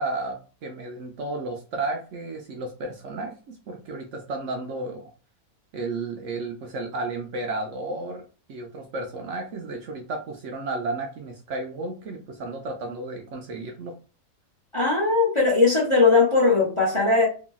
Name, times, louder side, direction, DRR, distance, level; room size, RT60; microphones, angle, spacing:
voice 1, 0.0-5.1 5.7-13.9, right 2 dB, 65° right, 0.8 m, -33 dB
voice 2, 14.7-17.3, left 3 dB, 30° left, 0.6 m, -19 dB
2.9 x 2.6 x 2.2 m
omnidirectional pair, 1.5 m